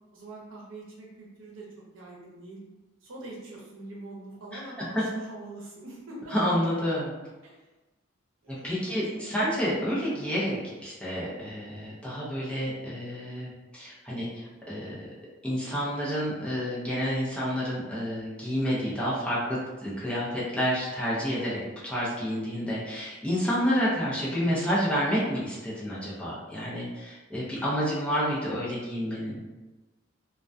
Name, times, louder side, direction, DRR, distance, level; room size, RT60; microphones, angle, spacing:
voice 1, 0.1-1.7 1.9-2.6 3.0-6.4 7.4-7.7 8.4-9.6, right 2 dB, 75° right, -3 dB, 0.7 m, -44 dB
voice 2, 6.3-7.1 8.6-15.1 15.4-29.4, equal, 5° left, -8 dB, 0.5 m, -29 dB
2.2 x 2.2 x 2.5 m, 1.1 s
head